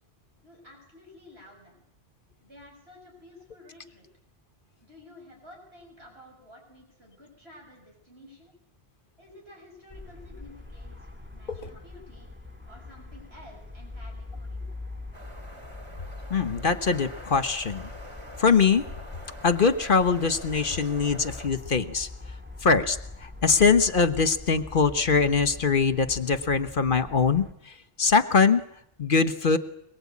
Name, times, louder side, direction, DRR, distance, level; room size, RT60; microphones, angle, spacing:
voice 1, 0.4-1.8 2.4-4.1 4.8-8.5 9.2-12.3 12.6-14.7, left 1 dB, 65° right, -1 dB, 7.7 m, -51 dB
sound 1, 9.9-27.5, left 2 dB, 10° right, 2.2 m, -43 dB
sound 2, 15.1-21.5, equal, 25° right, 5.1 m, -44 dB
voice 2, 16.3-17.9 18.4-18.8 19.4-22.1 22.6-23.0 23.4-27.5 28.0-28.6 29.0-29.6, left 5 dB, 50° left, 12 dB, 1.3 m, -22 dB
23.0 x 22.5 x 8.6 m, 0.74 s
omnidirectional pair, 1.1 m